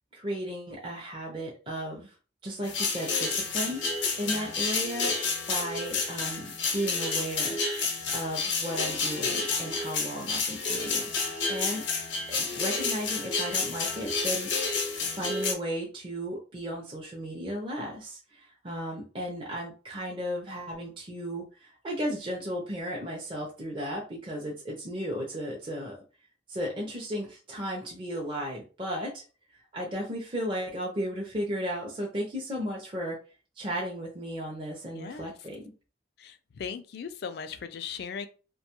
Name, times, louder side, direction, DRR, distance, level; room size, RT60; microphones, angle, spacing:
voice 1, 0.1-2.1 2.4-5.2 5.5-11.0 11.5-11.8 12.3-14.5 15.1-26.0 26.5-29.2 29.7-33.2 33.6-35.6, equal, 30° right, -2 dB, 0.5 m, -35 dB
sound 1, 2.6-15.5, left 4 dB, 85° left, 0.7 m, -30 dB
voice 2, 34.9-35.3 36.2-38.3, left 6 dB, 60° left, 10 dB, 0.3 m, -38 dB
2.6 x 2.2 x 2.9 m, 0.35 s
head